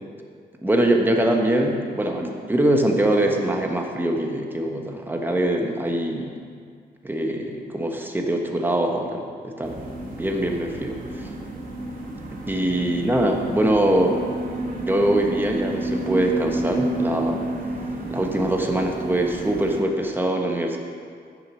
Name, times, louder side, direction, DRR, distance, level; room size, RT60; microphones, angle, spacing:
voice 1, 0.6-6.3 7.0-11.3 12.5-14.3 14.8-17.5 18.1-20.8, right 1 dB, 10° right, 2 dB, 1.3 m, -23 dB
sound 1, 9.6-19.8, right 1 dB, 55° right, 2.1 m, -31 dB
10.5 x 7.5 x 6.3 m, 2.1 s
cardioid pair, 120°, 17 cm